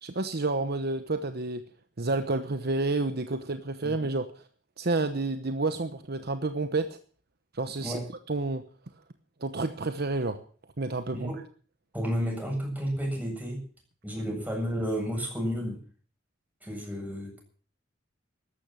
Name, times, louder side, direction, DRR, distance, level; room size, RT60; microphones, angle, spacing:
voice 1, 0.0-1.6 2.0-4.5 4.8-7.0 7.5-8.0 8.3-8.6 9.4-10.4 10.8-11.3, right 3 dB, 55° right, 9 dB, 1.1 m, -30 dB
voice 2, 11.9-13.6 14.0-15.8 16.6-17.4, equal, 10° right, 1 dB, 7.5 m, -31 dB
14.0 x 12.0 x 7.6 m, 0.44 s
head